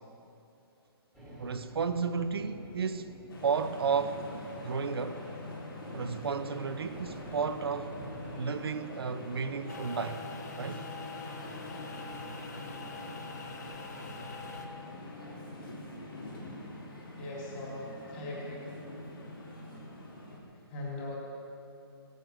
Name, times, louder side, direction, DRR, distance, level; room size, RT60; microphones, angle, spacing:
sound 1, 1.1-8.4, equal, 5° left, 2.1 m, -51 dB
voice 1, 1.4-3.1 3.4-4.2 4.6-5.2 5.9-8.0 8.3-10.2 10.6-10.9, right 5 dB, 70° right, 0.7 m, -32 dB
sound 2, 3.3-20.4, left 1 dB, 60° left, 3.7 m, -44 dB
sound 3, 9.7-14.7, left 4 dB, 40° left, 1.3 m, -43 dB
voice 2, 17.2-18.7 20.2-20.3 20.7-21.2, left 2 dB, 20° left, 3.7 m, -40 dB
17.5 x 9.2 x 7.9 m
hypercardioid pair, 175°, 13 cm